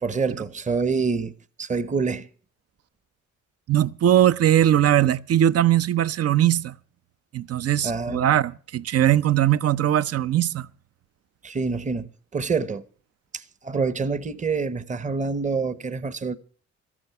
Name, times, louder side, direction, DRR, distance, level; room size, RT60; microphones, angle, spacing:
voice 1, 0.0-2.3 7.8-8.3 11.4-12.8 13.3-16.4, right 4 dB, 25° right, 1.0 m, -27 dB
voice 2, 3.7-6.7 7.3-10.7, right 11 dB, 55° right, 0.6 m, -20 dB
13.5 x 12.5 x 5.9 m
cardioid pair, 90°, 30 cm